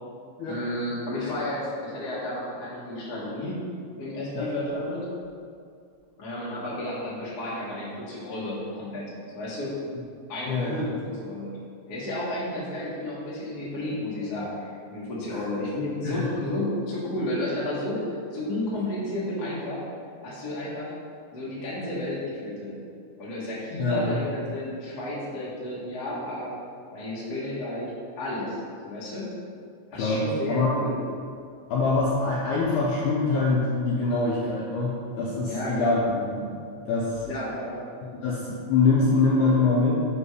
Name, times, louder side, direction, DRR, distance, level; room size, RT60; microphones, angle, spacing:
voice 1, 0.5-3.5 4.0-5.0 6.2-9.7 10.3-11.6 11.9-19.8 20.2-20.9 21.3-22.8 23.2-26.6 26.9-27.9 28.2-28.6 28.8-29.3 29.9-31.0 35.4-35.9 37.3-37.7, left 1 dB, 60° left, -7 dB, 1.0 m, -32 dB
voice 2, 10.5-10.8 15.3-15.4 16.0-16.3 23.8-24.2 29.9-30.2 30.5-30.8 31.7-36.5 36.8-37.2 38.0-39.9, left 3 dB, 75° left, -5 dB, 1.8 m, -24 dB
5.2 x 5.2 x 4.8 m, 2.3 s
omnidirectional pair, 4.3 m